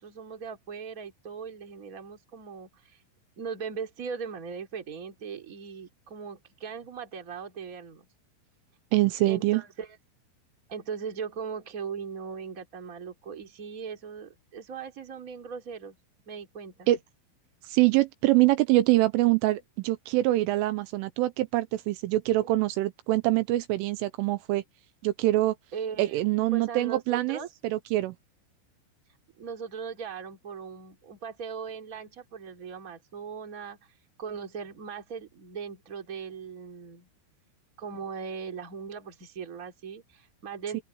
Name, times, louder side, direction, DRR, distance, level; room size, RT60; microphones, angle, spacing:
voice 1, 0.0-3.0 3.4-8.1 9.2-10.0 10.7-16.0 16.3-16.9 22.4-22.5 25.7-26.2 26.5-27.5 29.4-33.8 34.2-37.1 37.8-40.8, right 6 dB, 25° right, 2.4 m, -39 dB
voice 2, 8.9-9.6 16.9-17.0 17.6-24.6 25.0-25.6 26.0-28.2 40.7-40.8, right 17 dB, 80° right, 3.2 m, -24 dB
open air
omnidirectional pair, 5.9 m